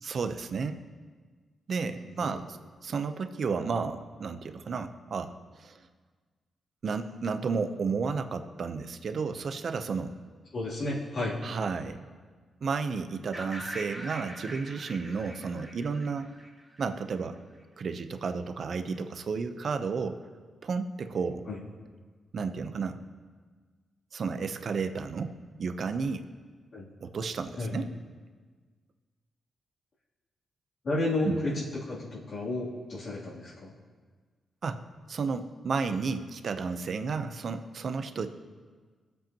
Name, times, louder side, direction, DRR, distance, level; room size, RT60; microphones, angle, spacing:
voice 1, 0.0-0.8 1.7-2.6 2.8-5.3 5.6-5.8 6.8-10.1 11.4-12.0 12.6-16.3 16.8-17.4 17.8-20.2 20.6-21.4 22.3-23.0 24.1-25.3 25.6-26.2 27.0-27.9 31.2-31.4 34.6-34.8 35.1-38.3, right 5 dB, 55° right, 8 dB, 0.7 m, -32 dB
voice 2, 10.5-11.3 21.5-21.6 26.7-26.9 27.6-27.7 30.8-33.7, left 2 dB, 60° left, -9 dB, 2.9 m, -32 dB
sound 1, 13.3-17.2, equal, ahead, 2.3 m, -43 dB
21.5 x 7.8 x 2.9 m, 1.5 s
cardioid pair, 110°, 0 cm